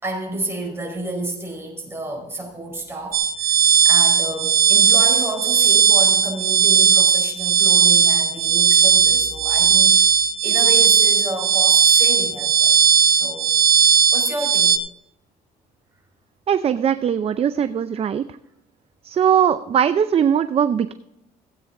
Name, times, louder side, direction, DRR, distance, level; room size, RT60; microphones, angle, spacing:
voice 1, 0.0-3.6 3.8-12.8 13.1-13.5 14.1-14.7, right 2 dB, 15° right, 1 dB, 4.8 m, -30 dB
sound 1, 3.1-14.8, right 7 dB, 60° right, 1.3 m, -16 dB
voice 2, 16.5-18.3 19.0-20.9, right 8 dB, 35° right, 12 dB, 0.5 m, -20 dB
16.5 x 8.7 x 3.8 m, 0.83 s
cardioid pair, 110°, 17 cm